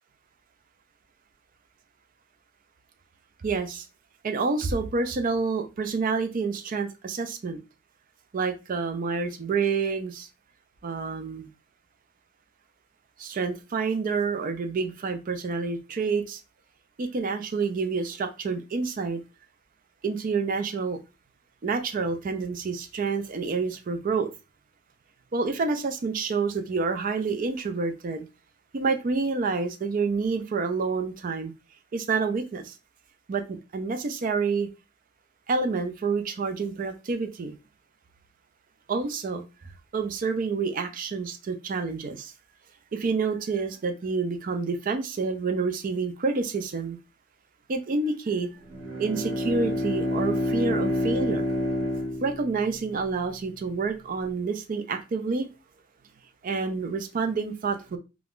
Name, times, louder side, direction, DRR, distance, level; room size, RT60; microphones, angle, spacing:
voice 1, 3.4-3.8 4.2-7.6 8.3-10.3 10.8-11.5 13.2-16.4 17.0-19.2 20.0-21.0 21.6-24.3 25.3-28.2 28.7-31.5 31.9-32.8 33.3-34.7 35.5-37.6 38.9-39.4 39.9-42.3 42.9-47.0 47.7-48.5 49.0-51.4 52.2-55.5 56.4-58.0, right 4 dB, 40° right, 0.4 m, -28 dB
Bowed string instrument, 48.6-53.0, equal, 80° right, 0.8 m, -28 dB
2.4 x 2.3 x 3.4 m
head